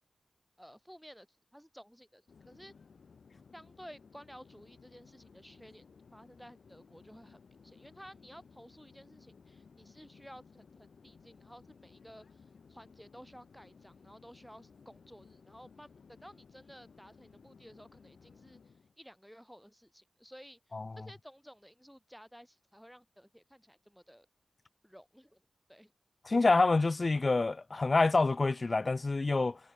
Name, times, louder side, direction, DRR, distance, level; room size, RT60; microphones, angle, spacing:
voice 1, 0.6-1.3 1.5-2.7 3.5-5.8 6.1-12.4 12.7-18.6 19.0-24.3 24.8-25.4 25.7-25.9, equal, ahead, 4.5 m, -54 dB
Conversation / Chatter / Fixed-wing aircraft airplane, 2.3-19.0, left 5 dB, 75° left, 1.8 m, -59 dB
voice 2, 26.2-29.6, left 3 dB, 50° left, 0.5 m, -27 dB
cardioid pair, 45°, 0 cm